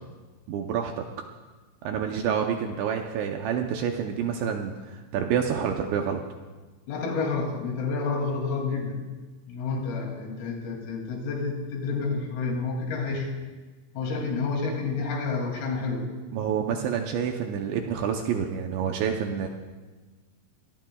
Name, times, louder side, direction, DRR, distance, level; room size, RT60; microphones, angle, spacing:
voice 1, 0.5-1.0 1.8-6.2 16.3-19.5, right 7 dB, 80° right, 3 dB, 2.7 m, -28 dB
voice 2, 6.9-9.0 9.5-13.3 14.0-16.1, left 4 dB, 80° left, 1 dB, 5.4 m, -29 dB
25.5 x 18.5 x 2.3 m, 1.3 s
omnidirectional pair, 5.9 m